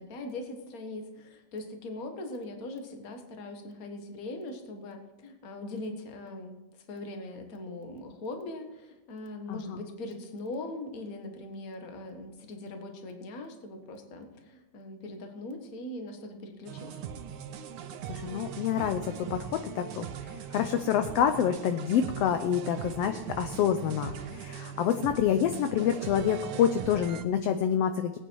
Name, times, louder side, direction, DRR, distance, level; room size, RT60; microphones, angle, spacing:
voice 1, 0.0-6.6 6.9-17.1, left 2 dB, 40° left, 5 dB, 1.5 m, -41 dB
voice 2, 9.5-9.8 18.1-28.2, left 9 dB, 75° left, 8 dB, 1.5 m, -27 dB
sound 1, 16.7-27.2, right 8 dB, 90° right, 2.3 m, -40 dB
20.0 x 9.0 x 4.6 m, 1.1 s
omnidirectional pair, 3.3 m